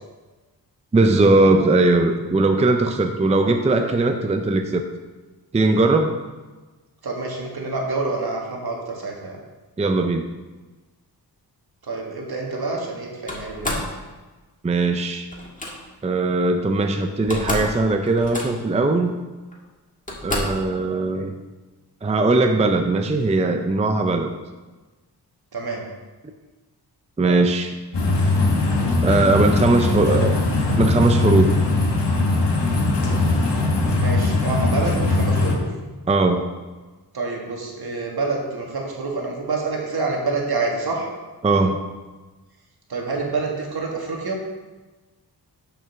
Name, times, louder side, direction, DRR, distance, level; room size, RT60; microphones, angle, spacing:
voice 1, 0.9-4.8 5.5-6.1 9.8-10.3 14.6-15.3 16.0-19.1 20.2-21.3 22.0-24.3 27.2-27.7 29.0-30.4 30.8-31.6 36.1-36.4 41.4-41.8, right 2 dB, 15° right, 6 dB, 0.5 m, -19 dB
voice 2, 7.0-9.4 11.8-13.8 25.5-25.8 33.9-35.7 37.1-41.1 42.9-44.4, right 3 dB, 65° right, -1 dB, 1.8 m, -27 dB
Slam, 13.3-13.9 15.3-15.7 16.8-16.9 17.1-17.8 18.0-18.7 19.5-19.6 20.1-20.6, left 1 dB, 20° left, 1.7 m, -28 dB
sound 1, 27.9-35.6, left 2 dB, 80° left, 1.4 m, -20 dB
7.2 x 5.3 x 5.9 m, 1.2 s
wide cardioid pair, 110°, 41 cm